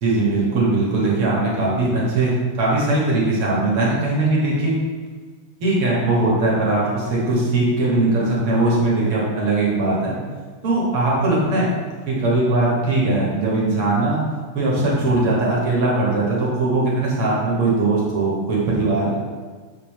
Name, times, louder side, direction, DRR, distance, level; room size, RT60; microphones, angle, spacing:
voice 1, 0.0-4.7 5.6-10.1 10.6-11.7 12.0-14.2 14.5-19.2, right 2 dB, 45° right, -5 dB, 1.3 m, -20 dB
6.1 x 2.6 x 3.1 m, 1.5 s
figure-of-eight pair, 90°, 0 cm